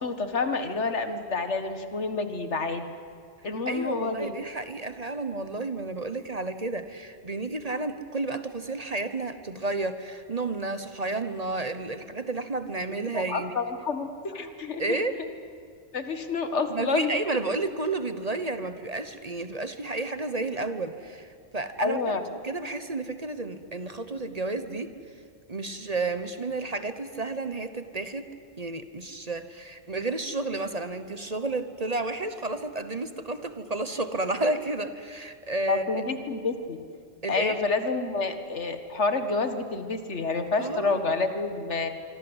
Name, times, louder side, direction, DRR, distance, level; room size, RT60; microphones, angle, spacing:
voice 1, 0.0-2.9 3.4-4.3 13.1-15.0 15.9-17.1 21.8-22.2 35.7-36.8 37.3-41.9, left 3 dB, 85° left, 8 dB, 2.1 m, -28 dB
voice 2, 3.7-13.6 14.8-15.2 16.7-22.0 22.4-24.9 25.5-28.3 28.6-35.8 37.2-37.5 40.6-41.0, right 2 dB, 35° right, 10 dB, 1.2 m, -31 dB
25.5 x 25.0 x 8.1 m, 2.2 s
omnidirectional pair, 1.2 m